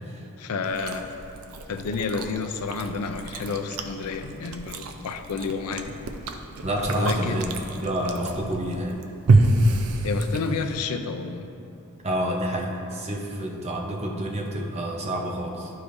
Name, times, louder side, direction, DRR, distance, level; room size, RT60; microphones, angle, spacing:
voice 1, 0.4-1.1 1.7-6.0 7.0-7.4 10.0-11.4, left 4 dB, 85° left, 7 dB, 0.5 m, -30 dB
Chewing mastication, 0.6-10.8, right 2 dB, 75° right, 0.5 m, -27 dB
voice 2, 6.6-7.5 7.8-9.0 12.0-15.7, right 1 dB, 30° right, 0 dB, 0.7 m, -28 dB
12.0 x 4.8 x 2.6 m, 2.7 s
head